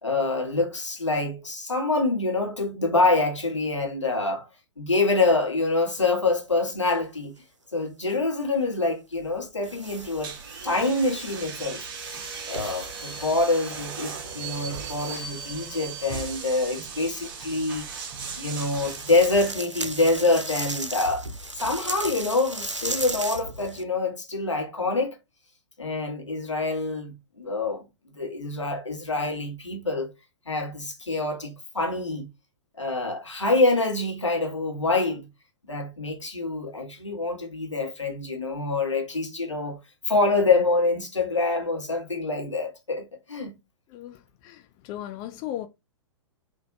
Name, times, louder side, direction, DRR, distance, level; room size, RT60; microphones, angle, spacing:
voice 1, 0.0-4.5 4.8-7.3 7.7-10.3 10.6-11.8 12.5-17.9 18.4-21.3 21.5-25.2 25.8-27.8 28.1-30.1 30.4-32.3 32.8-35.3 35.7-39.8 40.1-43.5, left 3 dB, 80° left, 1.5 m, -26 dB
sound 1, 6.3-7.0 8.1-8.3 9.2-11.6 11.9-15.3 18.2-23.8, right 2 dB, 90° right, 0.6 m, -37 dB
sound 2, 9.8-19.5, right 5 dB, 50° right, 1.2 m, -37 dB
voice 2, 43.9-45.7, left 12 dB, 25° left, 0.3 m, -37 dB
3.8 x 2.7 x 3.7 m
figure-of-eight pair, 105°, 15 cm